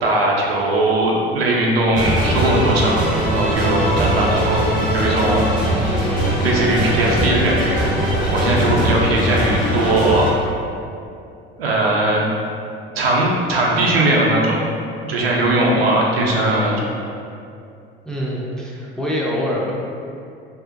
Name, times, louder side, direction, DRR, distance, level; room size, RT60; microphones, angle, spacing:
voice 1, 0.0-3.0 3.3-4.7 4.9-5.5 6.4-7.9 8.3-10.3 11.6-12.2 13.0-14.6 15.0-16.8, right 1 dB, 90° right, -3 dB, 0.4 m, -19 dB
sound 1, 1.9-10.3, right 1 dB, 25° left, 0.8 m, -20 dB
voice 2, 18.0-19.7, equal, ahead, -5 dB, 0.4 m, -24 dB
2.6 x 2.1 x 2.4 m, 2.5 s
hypercardioid pair, 65°, 29 cm